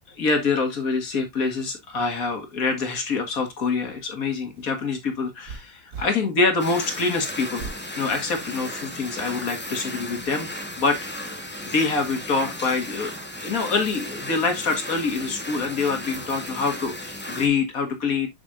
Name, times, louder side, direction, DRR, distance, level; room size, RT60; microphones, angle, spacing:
voice 1, 0.2-10.5 10.8-11.3 11.7-13.1 13.4-18.3, left 4 dB, 50° left, 2.0 m, -25 dB
sound 1, 4.2-6.2 7.6-7.8 8.5-9.1, right 5 dB, 55° right, 1.6 m, -39 dB
sound 2, 6.6-17.5, left 1 dB, 5° left, 0.9 m, -35 dB
7.2 x 6.2 x 2.5 m
omnidirectional pair, 2.1 m